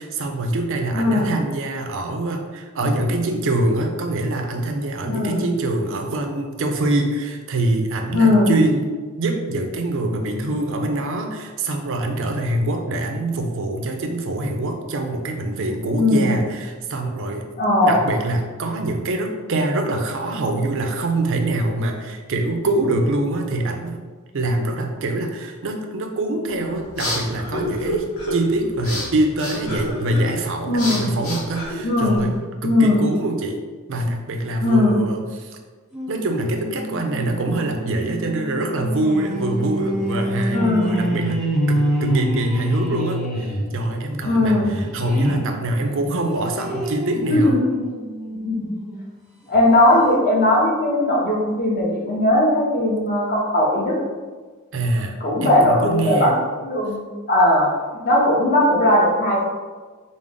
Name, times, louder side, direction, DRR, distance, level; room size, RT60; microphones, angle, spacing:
voice 1, 0.0-8.9 9.2-17.4 17.8-24.0 24.3-28.0 28.3-32.4 32.6-33.6 33.9-35.6 36.1-41.4 41.7-47.6 54.7-56.3, right 2 dB, 60° right, 4 dB, 0.5 m, -24 dB
voice 2, 0.9-1.3 5.1-5.4 8.1-8.5 15.9-16.3 17.6-18.0 30.7-31.1 31.8-32.2 32.6-33.0 34.6-35.0 40.5-41.0 44.2-44.7 47.3-47.8 48.3-48.7 49.5-54.0 55.2-56.3 56.6-57.0 57.3-57.7 58.0-59.5, left 1 dB, 45° left, -4 dB, 1.0 m, -18 dB
sound 1, 26.5-32.4, equal, 70° left, 1.1 m, -29 dB
sound 2, 35.9-45.5 46.0-49.0 49.5-49.6 49.9-50.0, right 1 dB, ahead, 0.7 m, -27 dB
5.0 x 2.0 x 3.6 m, 1.4 s
head